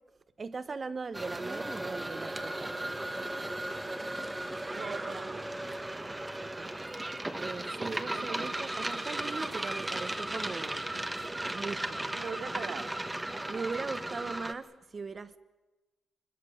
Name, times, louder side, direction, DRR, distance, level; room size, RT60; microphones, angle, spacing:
voice 1, 0.4-3.0 6.3-6.8 7.4-10.9 11.5-12.1 13.5-15.4, right 4 dB, 30° right, 1.2 m, -39 dB
sound 1, 1.1-14.5, right 1 dB, 10° right, 1.3 m, -36 dB
voice 2, 4.7-5.4 8.1-8.6 12.1-12.9, right 6 dB, 50° right, 2.4 m, -41 dB
28.0 x 22.0 x 6.7 m
cardioid pair, 145°, 0 cm